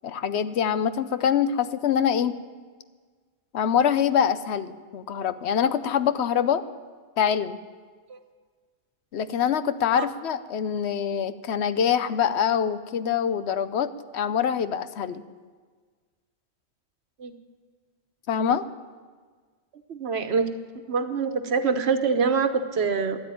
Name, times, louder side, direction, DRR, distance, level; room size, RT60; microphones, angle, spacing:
voice 1, 0.0-2.3 3.5-6.6 7.2-7.6 9.1-15.2 18.3-18.6, left 8 dB, 80° left, 13 dB, 1.0 m, -24 dB
voice 2, 19.9-20.5 20.9-23.2, right 5 dB, 70° right, 9 dB, 1.2 m, -25 dB
13.0 x 11.0 x 9.2 m, 1.5 s
omnidirectional pair, 1.1 m